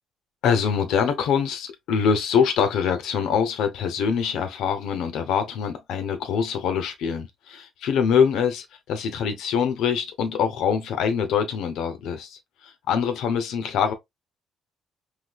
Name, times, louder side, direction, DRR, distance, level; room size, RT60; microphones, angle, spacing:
voice 1, 0.4-13.9, left 7 dB, 85° left, 0.8 m, -24 dB
4.0 x 2.7 x 2.3 m
cardioid pair, 90°, 0 cm